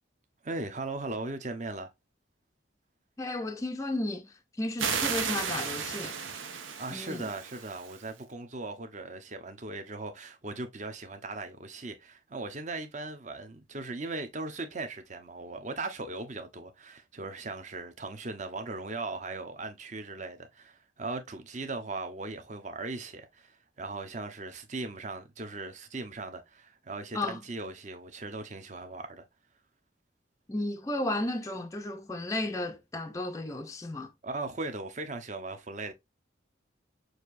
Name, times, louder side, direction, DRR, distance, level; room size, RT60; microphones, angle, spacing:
voice 1, 0.4-1.9 6.8-29.2 34.2-35.9, right 3 dB, 40° right, 0.8 m, -38 dB
voice 2, 3.2-6.2 6.9-7.3 27.1-27.4 30.5-34.1, left 2 dB, 15° left, 0.4 m, -33 dB
sound 1, 4.8-8.1, right 6 dB, 80° right, 0.8 m, -34 dB
6.4 x 2.7 x 2.5 m
head